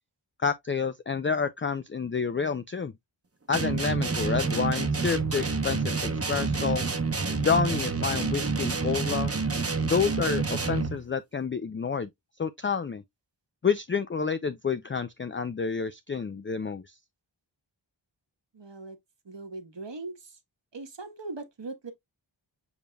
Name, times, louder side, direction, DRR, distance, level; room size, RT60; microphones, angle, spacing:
voice 1, 0.4-2.9 3.5-6.0 6.3-6.8 7.4-9.3 9.8-12.1 12.4-13.0 13.6-16.9, left 6 dB, 30° left, 0.4 m, -29 dB
sound 1, 3.5-11.0, right 4 dB, 30° right, 0.8 m, -28 dB
voice 2, 18.5-19.0 19.2-20.4 20.7-21.9, right 3 dB, 70° right, 1.2 m, -40 dB
7.2 x 3.3 x 2.2 m
wide cardioid pair, 50°, 45 cm